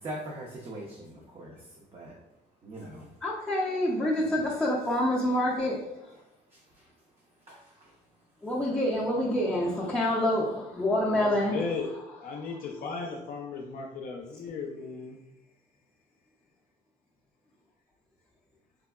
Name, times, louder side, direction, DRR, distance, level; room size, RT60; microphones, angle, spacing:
voice 1, 0.0-1.6 1.9-2.1 2.6-3.1 4.1-4.4 7.5-7.9, right 1 dB, 35° right, -3 dB, 0.6 m, -41 dB
voice 2, 3.2-6.0 8.4-11.6, left 1 dB, 5° left, -7 dB, 0.5 m, -27 dB
voice 3, 11.1-11.9 12.2-15.2, left 4 dB, 55° left, 0 dB, 0.5 m, -36 dB
3.4 x 2.1 x 2.3 m, 0.89 s
cardioid pair, 110°, 17 cm